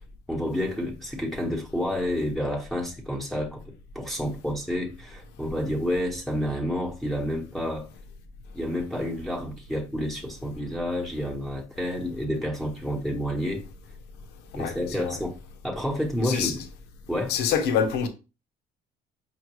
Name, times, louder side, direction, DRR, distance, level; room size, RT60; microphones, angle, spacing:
voice 1, 0.3-3.6 3.9-7.9 8.5-13.6 14.5-15.3 15.6-16.6 17.1-17.4, equal, ahead, 0.9 m, -29 dB
voice 2, 14.5-15.2 16.2-16.6 17.3-18.1, left 7 dB, 85° left, 0.8 m, -26 dB
5.3 x 2.5 x 3.0 m
cardioid pair, 110°, 17 cm